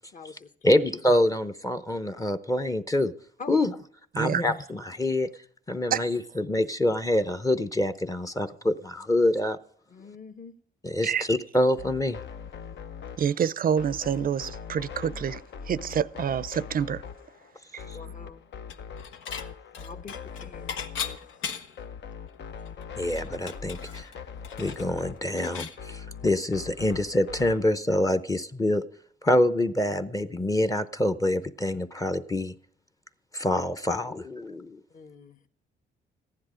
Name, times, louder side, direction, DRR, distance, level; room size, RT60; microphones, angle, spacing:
voice 1, 0.1-0.8 3.4-3.6 9.9-10.5 17.9-18.4 19.7-20.8 34.9-35.5, left 4 dB, 40° left, 1.1 m, -44 dB
voice 2, 0.6-3.1 3.5-3.7 4.1-5.3 5.7-9.6 10.8-12.2 17.9-18.0 23.0-24.1 24.6-28.8 29.2-32.5 33.3-34.8, left 1 dB, 15° left, 0.7 m, -26 dB
sound 1, 11.8-27.7, left 6 dB, 60° left, 0.8 m, -42 dB
voice 3, 13.2-15.4 15.7-17.0 17.7-17.8, right 8 dB, 45° right, 0.5 m, -27 dB
Dishes pots and pans / Chink clink, 18.7-19.5 19.7-21.9 22.3-22.4 22.7-25.8, left 7 dB, 85° left, 1.1 m, -37 dB
15.0 x 10.5 x 5.0 m
cardioid pair, 90°, 20 cm